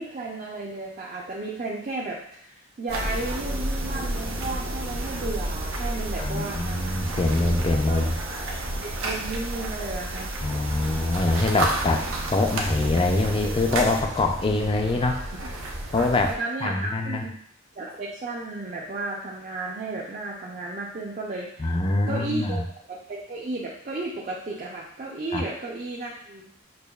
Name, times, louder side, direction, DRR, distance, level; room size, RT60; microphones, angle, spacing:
voice 1, 0.0-6.8 7.9-8.0 8.8-10.3 16.2-17.4 17.7-21.8 22.1-22.6 22.9-26.5, right 2 dB, 40° right, -3 dB, 0.5 m, -33 dB
sound 1, 2.9-16.4, right 1 dB, 75° right, 0.7 m, -31 dB
voice 2, 6.2-8.2 10.4-12.0 12.3-15.2 15.9-16.3 16.6-17.2 21.6-22.6 25.3-25.4, left 2 dB, 25° left, 4 dB, 0.3 m, -24 dB
6.5 x 2.3 x 2.3 m, 0.66 s
head